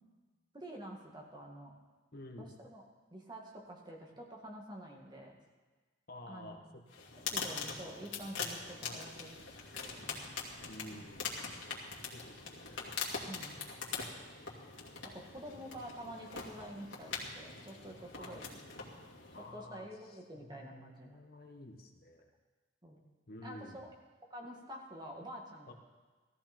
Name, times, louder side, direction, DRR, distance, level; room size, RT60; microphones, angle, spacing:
voice 1, 0.5-1.7 2.4-5.4 6.3-6.7 7.3-9.3 9.7-10.3 13.3-13.6 15.0-18.6 19.5-21.2 22.8-23.0 23.4-23.9 24.3-25.7, equal, 25° right, 0 dB, 2.1 m, -48 dB
voice 2, 2.1-2.6 6.1-7.7 8.8-9.1 10.7-11.4 12.1-13.0 13.8-14.6 15.5-15.9 18.2-18.4 19.3-22.3 23.3-23.9 25.7-25.8, left 1 dB, 55° left, 3 dB, 1.6 m, -52 dB
sound 1, 6.9-19.6, left 5 dB, 75° left, 2.5 m, -43 dB
17.5 x 14.0 x 4.5 m, 1.3 s
head